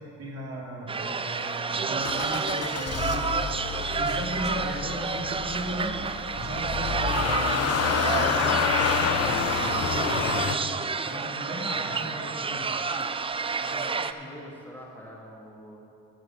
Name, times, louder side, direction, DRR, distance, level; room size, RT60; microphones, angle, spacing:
voice 1, 0.2-3.3 3.9-6.0 6.3-10.8 11.0-12.6, right 1 dB, 55° right, -3 dB, 2.5 m, -36 dB
sound 1, 0.9-14.1, right 4 dB, 20° right, 0.4 m, -29 dB
Motor vehicle (road) / Engine starting, 2.0-10.6, left 8 dB, 55° left, 0.7 m, -29 dB
voice 2, 11.9-12.7 13.6-15.8, equal, 5° left, -4 dB, 2.1 m, -45 dB
12.0 x 7.0 x 6.0 m, 2.7 s
cardioid pair, 90°, 30 cm